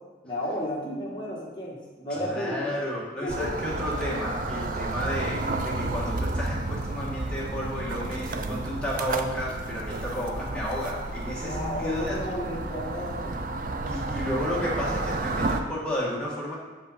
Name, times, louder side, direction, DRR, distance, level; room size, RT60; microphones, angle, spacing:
voice 1, 0.2-2.7 3.2-3.9 11.4-13.4, left 1 dB, 25° left, -5 dB, 1.5 m, -33 dB
voice 2, 2.1-12.2 13.9-16.6, equal, 5° left, -6 dB, 1.4 m, -32 dB
sound 1, 3.3-15.6, right 2 dB, 45° right, 0.4 m, -31 dB
6.8 x 5.1 x 4.1 m, 1.3 s
head